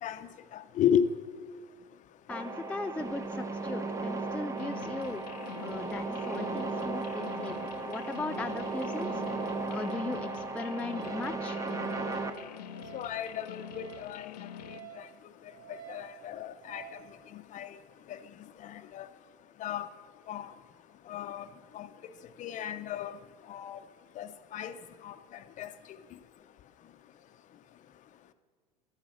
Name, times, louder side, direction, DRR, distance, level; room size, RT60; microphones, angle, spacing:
voice 1, 0.0-1.1 12.9-14.3 15.9-16.8 17.3-17.7 18.1-18.2 18.6-19.1 19.6-19.9 20.3-20.5 21.1-21.5 21.7-21.9 22.4-23.2 23.5-23.8 24.2-24.8 25.0-25.1 25.6-25.7, left 9 dB, 35° left, 11 dB, 0.7 m, -33 dB
voice 2, 2.3-5.3 5.6-11.6, left 3 dB, 5° left, 6 dB, 0.4 m, -38 dB
sound 1, 2.3-12.3, right 3 dB, 15° right, 0.9 m, -36 dB
sound 2, 4.6-14.8, left 11 dB, 75° left, 0.5 m, -46 dB
Wind instrument woodwind instrument, 10.9-17.1, right 11 dB, 90° right, 2.9 m, -52 dB
11.5 x 8.4 x 6.2 m, 1.5 s
hypercardioid pair, 85°, 21 cm